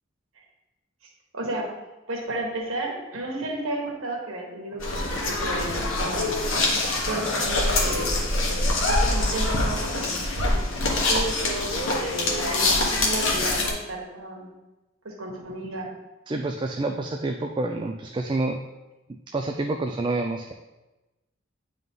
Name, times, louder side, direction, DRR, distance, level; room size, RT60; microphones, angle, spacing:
voice 1, 1.3-1.7 2.1-6.7 7.0-10.6 10.9-14.5 15.0-15.9, right 1 dB, 90° right, -1 dB, 1.5 m, -33 dB
sound 1, 4.8-13.7, left 2 dB, 75° left, 1.3 m, -24 dB
voice 2, 16.3-18.6 19.3-20.5, right 2 dB, 25° right, 4 dB, 0.3 m, -28 dB
9.2 x 3.8 x 3.6 m, 1.1 s
head